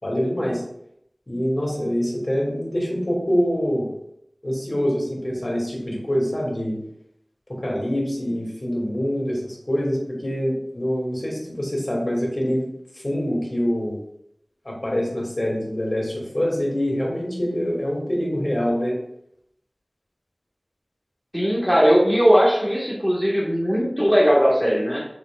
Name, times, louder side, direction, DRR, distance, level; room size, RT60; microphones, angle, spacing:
voice 1, 0.0-0.6 1.3-3.9 4.4-6.8 7.6-12.6 13.0-14.0 14.6-19.0, equal, 50° left, -3 dB, 2.5 m, -25 dB
voice 2, 21.3-25.1, equal, 5° right, -4 dB, 1.7 m, -18 dB
6.8 x 5.6 x 2.5 m, 0.73 s
wide cardioid pair, 40°, 0 cm